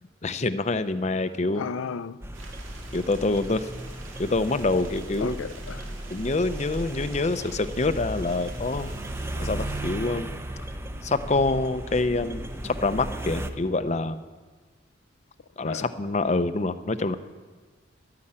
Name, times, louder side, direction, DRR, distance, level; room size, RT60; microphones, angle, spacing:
voice 1, 0.2-1.7 2.9-3.7 4.2-5.4 6.1-8.9 9.4-10.3 11.0-14.2 15.6-17.2, left 3 dB, 35° left, 0.6 m, -26 dB
voice 2, 1.5-2.2 5.2-5.9 15.6-15.9, left 5 dB, 90° left, 0.5 m, -34 dB
sound 1, 2.2-13.5, right 1 dB, 10° right, 0.6 m, -36 dB
sound 2, 2.3-9.9, right 2 dB, 90° right, 1.9 m, -47 dB
12.0 x 9.8 x 8.7 m
head